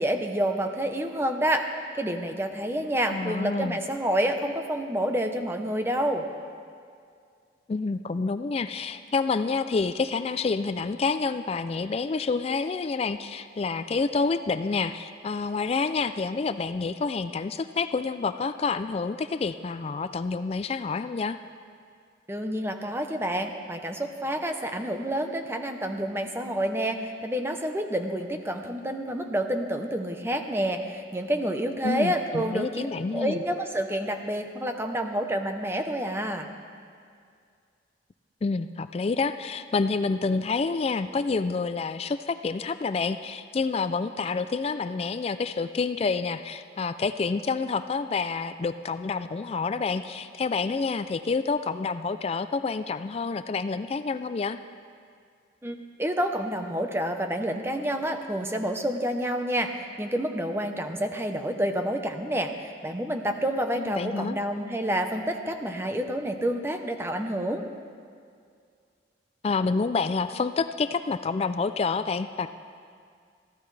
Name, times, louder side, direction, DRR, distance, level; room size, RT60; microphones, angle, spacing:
voice 1, 0.0-1.7 1.9-6.2 22.3-32.9 33.1-36.5 55.6-67.6, right 1 dB, 15° right, 5 dB, 0.8 m, -28 dB
voice 2, 3.1-3.8 7.7-21.4 31.8-33.4 38.4-54.6 63.8-64.4 69.4-72.5, left 4 dB, 35° left, 11 dB, 0.3 m, -28 dB
23.0 x 15.0 x 3.3 m, 2.2 s
head